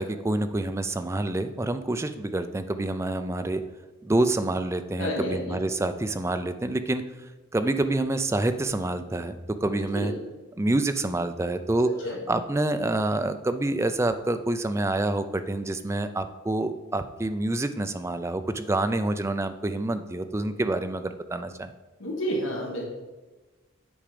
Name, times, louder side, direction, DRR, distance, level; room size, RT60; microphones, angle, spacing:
voice 1, 0.0-3.6 4.0-7.0 7.5-10.1 10.6-11.9 12.3-21.7, right 2 dB, 15° right, 9 dB, 0.4 m, -27 dB
voice 2, 5.0-5.6 9.8-10.1 12.0-12.2 22.0-22.8, equal, 70° left, -1 dB, 1.5 m, -30 dB
8.7 x 5.0 x 5.0 m, 1.2 s
head